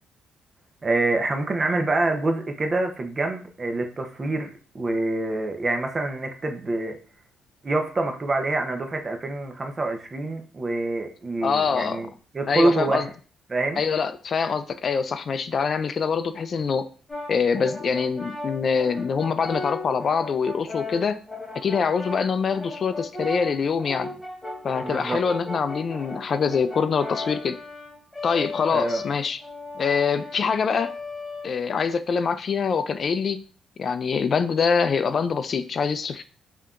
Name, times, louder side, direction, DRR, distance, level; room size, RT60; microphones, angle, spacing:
voice 1, 0.8-4.5 4.7-7.0 7.6-12.1 12.3-13.1 13.5-13.8 24.8-25.2 28.7-29.0, right 2 dB, 30° right, 5 dB, 0.8 m, -26 dB
voice 2, 11.4-12.0 12.5-13.1 13.8-16.9 17.3-21.2 21.6-24.1 24.6-27.6 28.2-29.4 29.8-30.9 31.4-33.4 33.8-36.2, left 5 dB, 50° left, 12 dB, 0.3 m, -24 dB
Brass instrument, 17.1-31.9, left 2 dB, 15° left, 1.2 m, -36 dB
5.6 x 2.8 x 2.5 m, 0.39 s
cardioid pair, 90°, 0 cm